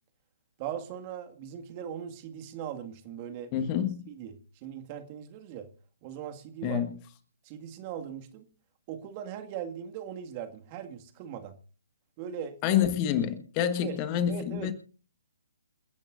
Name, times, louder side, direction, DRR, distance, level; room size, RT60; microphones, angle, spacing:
voice 1, 0.6-3.7 4.1-5.7 6.0-6.8 7.4-8.5 8.9-11.5 12.2-12.6 13.8-14.0 14.3-14.7, right 9 dB, 30° right, 2.0 m, -39 dB
voice 2, 3.5-4.0 6.6-7.0 12.6-14.7, left 9 dB, 30° left, 1.5 m, -27 dB
28.5 x 10.5 x 2.6 m
figure-of-eight pair, 130°, 0 cm